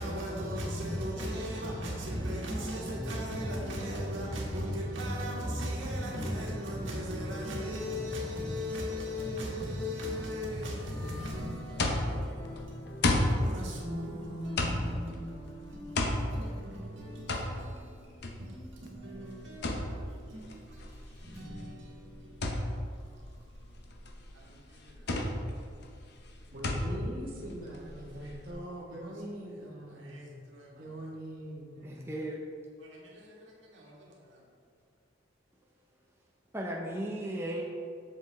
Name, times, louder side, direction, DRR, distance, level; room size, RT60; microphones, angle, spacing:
voice 1, 0.0-23.0 24.3-25.1 28.2-29.1 29.9-30.9 32.8-33.3 33.7-34.4, equal, 80° right, 1.7 m, -38 dB
sound 1, 10.8-16.6, equal, 30° left, 1.0 m, -51 dB
sound 2, 11.4-28.5, left 1 dB, 60° left, 0.8 m, -34 dB
voice 2, 26.5-30.3 30.8-32.1, equal, 50° right, 1.6 m, -42 dB
voice 3, 31.8-32.4 36.5-37.6, right 1 dB, 15° right, 0.6 m, -35 dB
8.0 x 6.7 x 3.4 m
head